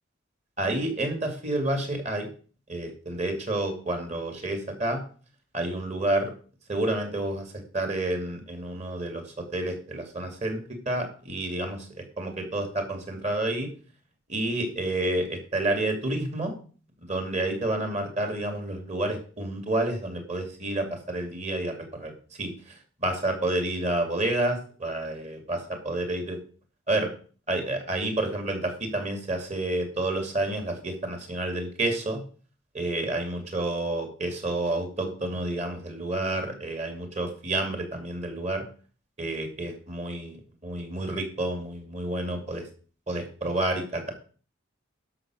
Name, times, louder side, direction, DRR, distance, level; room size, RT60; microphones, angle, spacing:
voice 1, 0.6-2.3 2.7-5.0 5.5-6.3 6.7-10.6 10.9-13.7 14.3-16.5 17.1-22.1 22.4-22.5 23.0-26.4 26.9-27.1 27.5-32.2 32.7-38.6 39.2-42.7 43.1-44.1, right 2 dB, 35° right, 5 dB, 2.6 m, -29 dB
11.5 x 6.0 x 6.2 m, 0.40 s
head